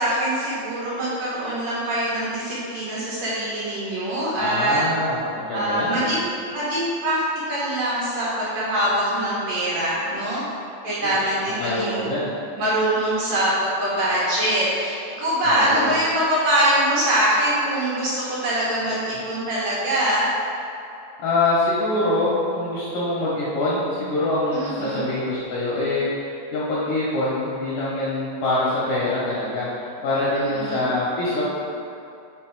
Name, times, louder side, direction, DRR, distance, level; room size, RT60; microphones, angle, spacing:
voice 1, 0.0-4.8 5.5-6.2 6.5-7.2 7.5-10.4 10.8-12.1 12.6-20.3 24.5-25.0 30.4-30.9, right 1 dB, 65° right, -8 dB, 2.4 m, -23 dB
voice 2, 4.4-6.0 11.0-11.2 11.5-12.3 15.4-15.9 21.2-31.4, left 2 dB, 75° left, -7 dB, 2.1 m, -24 dB
6.5 x 4.2 x 4.6 m, 2.7 s
omnidirectional pair, 4.9 m